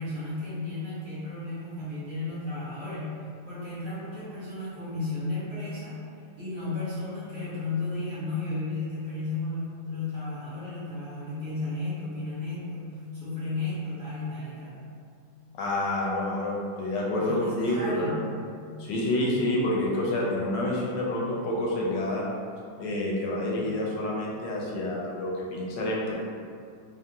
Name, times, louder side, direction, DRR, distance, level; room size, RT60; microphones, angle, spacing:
voice 1, 0.0-3.2 3.4-5.9 6.4-14.8 17.1-18.2, left 2 dB, 50° right, -11 dB, 1.2 m, -33 dB
voice 2, 15.6-18.3 18.8-22.2 22.8-26.1, left 1 dB, 75° left, -4 dB, 1.2 m, -28 dB
3.5 x 2.0 x 2.7 m, 2.3 s
omnidirectional pair, 2.2 m